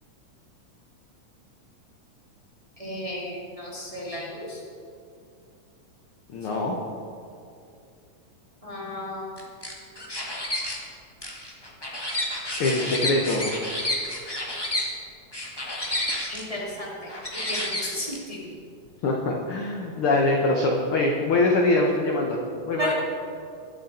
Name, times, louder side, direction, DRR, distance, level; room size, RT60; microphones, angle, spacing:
voice 1, 2.8-4.6 8.6-9.4 16.3-17.1 17.5-18.5 22.8-22.9, left 1 dB, 15° right, -5 dB, 1.8 m, -34 dB
voice 2, 6.3-6.8 12.6-13.6 19.0-22.9, left 2 dB, 65° left, 0 dB, 1.4 m, -23 dB
sound 1, 9.4-10.8 11.2-14.9 15.3-16.4 17.1-18.2, left 1 dB, 40° left, 0.3 m, -30 dB
22.0 x 7.9 x 4.3 m, 2.5 s
omnidirectional pair, 3.8 m